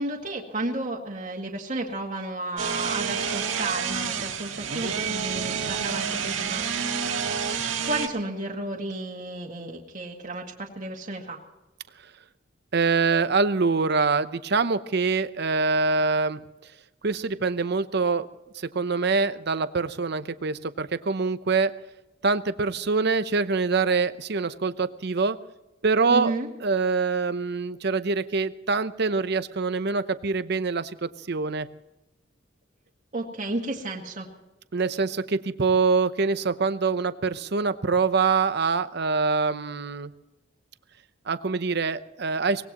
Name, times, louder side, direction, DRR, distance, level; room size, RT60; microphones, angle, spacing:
voice 1, 0.0-7.1 7.9-11.4 26.1-26.5 33.1-34.3, right 2 dB, 40° right, -1 dB, 2.0 m, -32 dB
sound 1, 2.6-8.1, right 6 dB, 85° right, 1.8 m, -29 dB
voice 2, 12.7-16.4 17.0-18.3 18.5-21.7 22.2-25.4 25.8-26.3 26.6-31.7 34.7-40.1 41.3-42.7, right 4 dB, 60° right, 13 dB, 0.8 m, -24 dB
24.0 x 19.0 x 3.0 m, 1.0 s
head